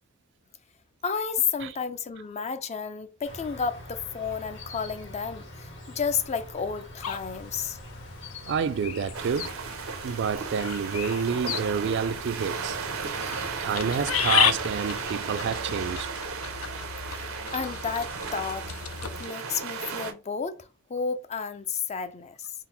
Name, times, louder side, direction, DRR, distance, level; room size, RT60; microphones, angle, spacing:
voice 1, 1.0-7.8 17.5-22.5, left 6 dB, 30° left, 0.4 m, -32 dB
Insect, 3.2-15.5, left 1 dB, 60° left, 1.7 m, -44 dB
sound 1, 7.0-19.3, left 8 dB, 85° left, 0.5 m, -33 dB
voice 2, 8.4-9.6 10.0-12.8 13.6-16.1, right 6 dB, 55° right, 0.3 m, -28 dB
sound 2, 9.1-20.1, right 5 dB, 85° right, 0.7 m, -35 dB
3.7 x 2.0 x 4.3 m
head